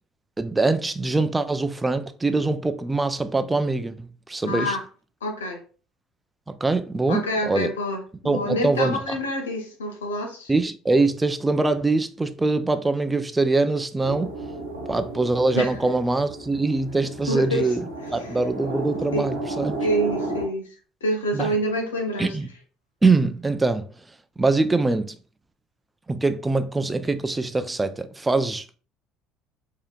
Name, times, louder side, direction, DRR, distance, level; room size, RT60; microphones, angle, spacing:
voice 1, 0.4-4.8 6.5-7.7 8.2-9.2 10.5-14.3 14.9-17.8 18.1-19.9 21.3-21.6 22.2-22.5 23.0-23.9 24.4-25.2 26.1-28.8, right 3 dB, 15° right, 0.5 m, -23 dB
voice 2, 4.4-4.8 5.2-5.6 7.1-10.5 15.5-15.7 17.3-17.7 18.2-18.3 19.1-19.3 19.8-20.7 21.0-22.3, equal, 80° left, 0.8 m, -27 dB
sound 1, 14.0-20.4, right 2 dB, 85° right, 1.0 m, -33 dB
4.8 x 2.8 x 2.4 m
figure-of-eight pair, 60°, 0 cm